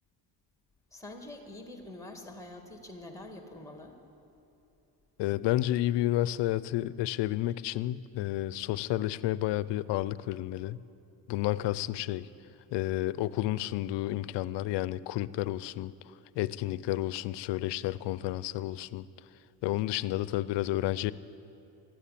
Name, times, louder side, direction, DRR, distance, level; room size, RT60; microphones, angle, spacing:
voice 1, 0.9-4.0, left 2 dB, 5° left, 5 dB, 2.0 m, -45 dB
voice 2, 5.2-10.8 11.3-12.3 12.7-15.9 16.4-19.1 19.6-21.1, left 15 dB, 75° left, 19 dB, 0.5 m, -31 dB
13.5 x 9.9 x 8.6 m, 2.8 s
cardioid pair, 90°, 42 cm